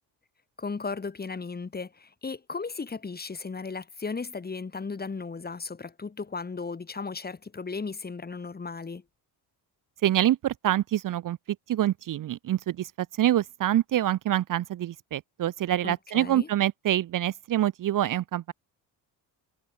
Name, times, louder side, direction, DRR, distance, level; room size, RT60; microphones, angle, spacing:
voice 1, 0.6-9.0 15.8-16.5, left 4 dB, 20° left, 2.0 m, -36 dB
voice 2, 10.0-11.4 11.7-18.5, right 12 dB, 50° right, 0.8 m, -26 dB
cardioid pair, 90°, 41 cm